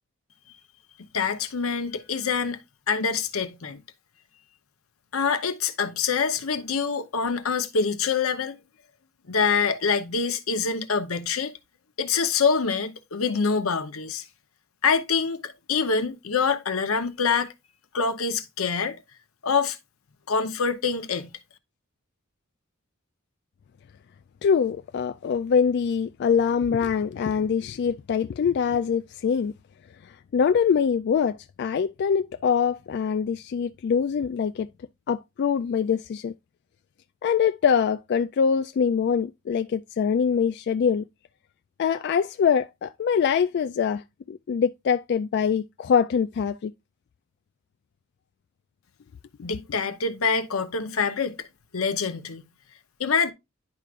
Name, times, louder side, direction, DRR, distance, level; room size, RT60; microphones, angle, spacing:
voice 1, 1.1-2.6 2.9-3.8 5.1-8.6 9.3-11.5 12.0-14.2 14.8-17.5 17.9-19.0 19.4-19.8 20.3-21.3 49.4-51.5 51.7-52.4 53.0-53.3, left 5 dB, 85° left, 0.8 m, -25 dB
voice 2, 24.4-29.5 30.0-34.7 35.1-36.3 37.2-41.1 41.8-46.7, left 7 dB, 50° left, 0.3 m, -24 dB
10.5 x 4.7 x 2.4 m
head